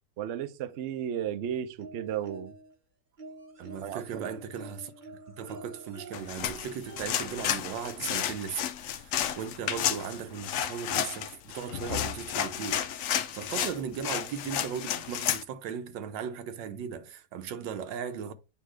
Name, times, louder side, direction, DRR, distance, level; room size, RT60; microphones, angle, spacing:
voice 1, 0.2-2.5 3.8-4.3, right 10 dB, 65° right, 0.6 m, -34 dB
sound 1, 1.8-2.7 3.2-8.9 10.1-10.2 10.5-10.6, right 2 dB, 35° right, 0.8 m, -49 dB
voice 2, 3.6-18.3, right 7 dB, 90° right, 1.5 m, -37 dB
sound 2, 6.1-15.4, left 10 dB, 80° left, 0.7 m, -32 dB
8.6 x 2.9 x 4.7 m
omnidirectional pair, 1.9 m